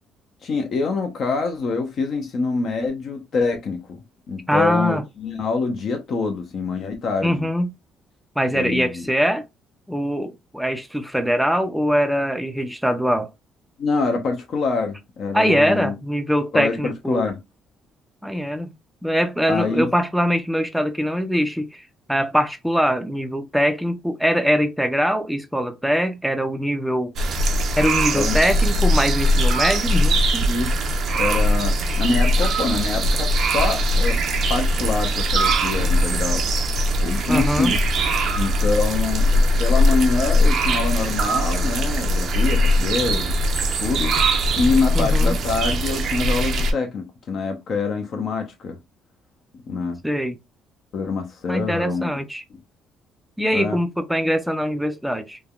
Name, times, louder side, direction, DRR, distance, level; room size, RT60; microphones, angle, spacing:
voice 1, 0.4-7.5 8.5-9.1 13.8-16.0 16.5-17.4 19.5-19.9 28.1-28.4 30.5-30.8 31.1-34.2 34.5-36.5 37.0-37.8 38.3-43.3 43.8-44.2 44.5-48.8 49.7-50.0 50.9-52.1 53.5-53.8, left 4 dB, 50° left, 0.6 m, -25 dB
voice 2, 4.5-5.0 7.2-7.7 8.4-9.4 9.9-13.3 15.3-17.3 18.2-18.7 19.0-21.8 22.1-27.1 27.8-30.5 37.3-37.8 44.9-45.4 50.0-50.4 51.5-52.4 53.4-55.4, equal, ahead, 0.4 m, -22 dB
sound 1, 27.2-46.7, equal, 55° right, 0.5 m, -20 dB
3.2 x 2.1 x 2.3 m
cardioid pair, 130°, 0 cm